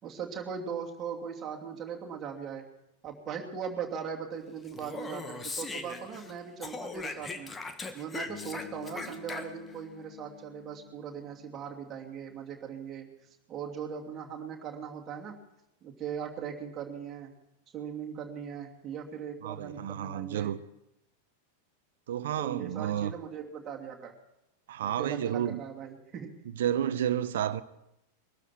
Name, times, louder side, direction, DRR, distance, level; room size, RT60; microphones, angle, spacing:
voice 1, 0.0-2.6 3.0-7.5 7.9-13.1 13.5-15.4 15.8-17.3 17.7-20.5 22.4-24.1 24.8-26.3, right 7 dB, 25° right, 2.8 m, -39 dB
Speech, 4.7-6.3 6.6-9.8, left 3 dB, 15° left, 1.4 m, -39 dB
Bass guitar, 8.3-12.4, left 16 dB, 45° left, 1.1 m, -50 dB
voice 2, 19.4-20.6 22.1-23.1 24.7-25.6 26.6-27.6, right 10 dB, 60° right, 0.8 m, -31 dB
22.5 x 12.5 x 4.6 m
figure-of-eight pair, 90°, 0 cm